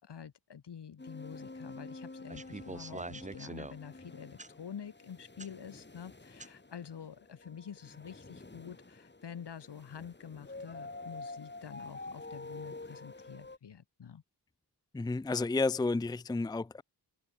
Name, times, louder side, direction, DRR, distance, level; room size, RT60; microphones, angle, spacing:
voice 1, 0.0-14.2, left 7 dB, 75° left, 3.0 m, -47 dB
sound 1, 1.0-13.6, left 2 dB, 25° left, 7.8 m, -48 dB
sound 2, 2.3-3.8 4.4-4.5 5.4-5.5 6.4-6.5, right 3 dB, 20° right, 1.0 m, -43 dB
voice 2, 14.9-16.8, left 3 dB, 10° left, 0.5 m, -31 dB
wide cardioid pair, 100°, 41 cm